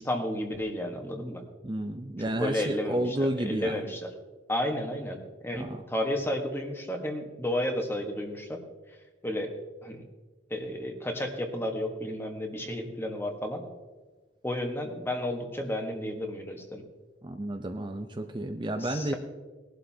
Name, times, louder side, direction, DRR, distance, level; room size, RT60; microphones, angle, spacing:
voice 1, 0.0-1.4 2.2-4.1 4.5-8.6 9.2-9.5 9.8-10.0 10.5-13.6 14.4-16.8 18.8-19.1, left 1 dB, 10° left, 4 dB, 1.3 m, -32 dB
voice 2, 1.6-3.8 5.5-5.8 17.2-19.1, right 1 dB, 25° right, 5 dB, 0.6 m, -31 dB
20.0 x 11.5 x 2.8 m, 1.3 s
head